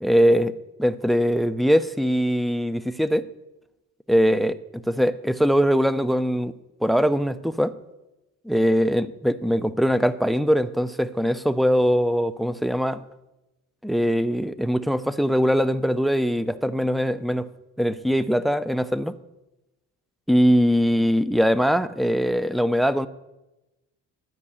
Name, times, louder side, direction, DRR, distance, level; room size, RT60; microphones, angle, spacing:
voice 1, 0.0-3.3 4.1-6.5 6.8-7.8 8.5-13.0 13.8-17.5 17.8-19.1 20.3-23.1, equal, ahead, 14 dB, 0.5 m, -21 dB
12.5 x 5.3 x 8.6 m, 0.99 s
cardioid pair, 90°, 30 cm